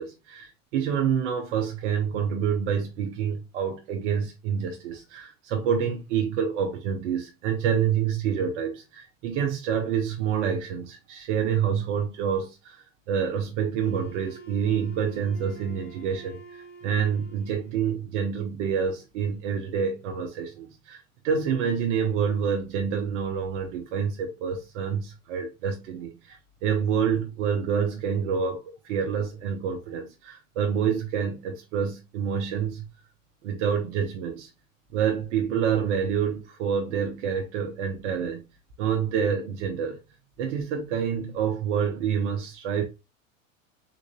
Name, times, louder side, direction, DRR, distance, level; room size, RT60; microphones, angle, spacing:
voice 1, 0.0-32.9 33.4-34.5 34.9-38.4 38.8-40.0 40.4-42.8, right 7 dB, 60° right, 0.8 m, -27 dB
Wind instrument woodwind instrument, 13.8-17.9, right 6 dB, 65° left, 1.4 m, -47 dB
3.7 x 2.5 x 2.9 m
hypercardioid pair, 90°, 40 cm